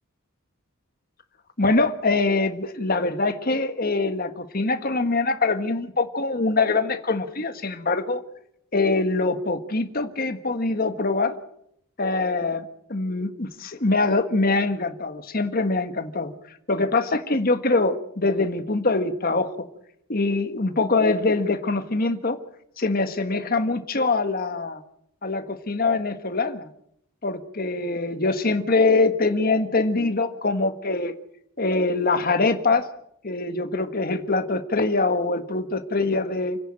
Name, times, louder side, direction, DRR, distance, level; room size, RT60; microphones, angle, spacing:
voice 1, 1.6-8.2 8.7-11.4 12.0-16.3 16.7-19.5 20.1-22.4 22.8-24.8 25.2-26.7 27.2-31.1 31.6-32.9 33.2-36.6, left 3 dB, 45° left, 9 dB, 1.5 m, -23 dB
29.5 x 10.5 x 8.9 m, 0.75 s
head